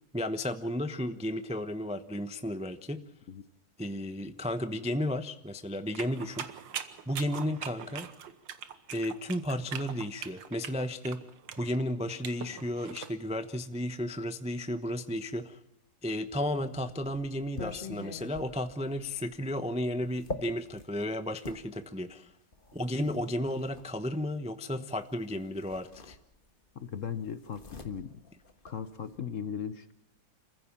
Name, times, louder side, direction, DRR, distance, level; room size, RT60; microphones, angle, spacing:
voice 1, 0.1-3.0 3.8-6.5 7.1-8.1 8.9-11.3 11.6-15.6 16.0-22.3 22.7-26.2, left 1 dB, 10° right, 9 dB, 0.4 m, -33 dB
sound 1, 5.9-13.1, right 8 dB, 70° right, 1.9 m, -42 dB
sound 2, 16.3-21.6 22.5-23.9 25.1-25.2 25.6-26.7 26.9-29.2, left 2 dB, 30° left, 1.5 m, -44 dB
voice 2, 26.7-28.2 28.6-29.9, left 7 dB, 50° left, 12 dB, 1.0 m, -37 dB
27.5 x 15.5 x 7.4 m, 0.84 s
omnidirectional pair, 2.2 m